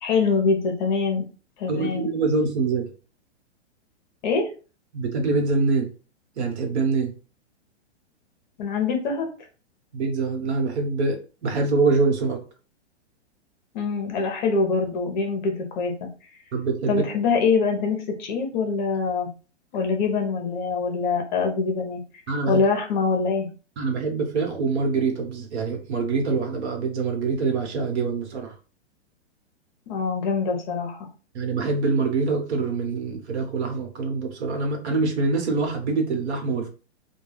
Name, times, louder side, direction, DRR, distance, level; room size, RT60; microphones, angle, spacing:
voice 1, 0.0-1.2 1.6-2.1 4.2-4.5 8.6-9.3 13.7-15.9 16.9-19.3 19.7-22.0 22.5-23.5 29.9-31.1, left 4 dB, 40° left, 2 dB, 0.7 m, -24 dB
voice 2, 1.7-2.9 4.9-5.9 6.4-7.1 9.9-12.4 16.5-17.0 22.3-22.6 23.8-28.5 31.3-36.7, right 4 dB, 70° right, 3 dB, 1.0 m, -24 dB
2.3 x 2.2 x 3.2 m, 0.35 s
hypercardioid pair, 150°, 34 cm